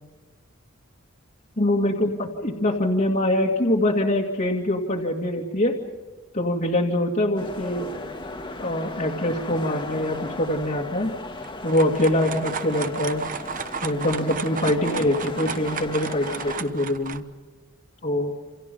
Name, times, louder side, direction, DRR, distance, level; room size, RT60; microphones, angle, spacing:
voice 1, 1.6-5.8 6.3-7.9 8.6-11.1 11.6-13.2 13.8-17.2 18.0-18.3, left 1 dB, 40° left, -2 dB, 2.3 m, -24 dB
sound 1, 7.4-16.6, left 2 dB, 25° left, 2.0 m, -37 dB
sound 2, 11.4-17.2, right 6 dB, 40° right, 1.1 m, -33 dB
28.5 x 28.0 x 5.5 m, 1.3 s
head